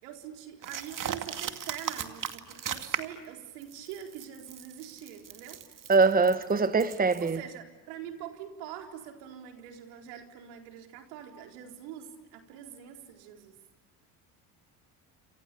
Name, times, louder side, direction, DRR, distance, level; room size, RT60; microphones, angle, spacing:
voice 1, 0.0-5.6 7.2-13.6, right 10 dB, 80° right, 4.3 m, -44 dB
sound 1, 0.6-3.3 3.6-7.4, right 8 dB, 40° right, 2.2 m, -37 dB
voice 2, 5.9-7.4, right 4 dB, 20° right, 1.4 m, -23 dB
28.5 x 28.5 x 7.0 m
supercardioid pair, 80°, 47 cm